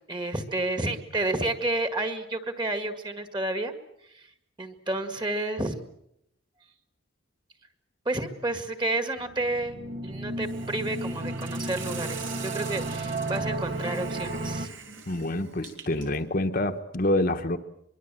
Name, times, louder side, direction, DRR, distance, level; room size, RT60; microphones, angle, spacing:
voice 1, 0.1-3.7 4.1-4.3 4.6-5.7 8.1-9.8 10.0-14.7, right 2 dB, 25° right, 8 dB, 1.9 m, -30 dB
sound 1, 9.2-14.7, right 2 dB, 45° right, 1.2 m, -33 dB
Hiss, 10.4-16.2, right 6 dB, 70° right, 3.7 m, -43 dB
voice 2, 15.1-17.6, left 1 dB, 45° left, 6 dB, 1.2 m, -27 dB
24.0 x 23.0 x 7.6 m, 0.77 s
head